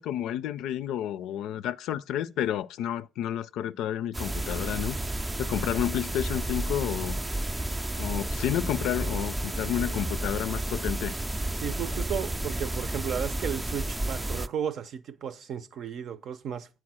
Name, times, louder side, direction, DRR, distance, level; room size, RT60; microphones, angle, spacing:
voice 1, 0.0-5.0 5.4-7.2 7.9-11.1, left 11 dB, 90° left, 0.4 m, -30 dB
sound 1, 4.1-14.5, right 1 dB, 15° right, 0.4 m, -31 dB
voice 2, 11.6-16.7, right 8 dB, 70° right, 0.7 m, -34 dB
8.7 x 4.7 x 6.2 m
cardioid pair, 90°, 0 cm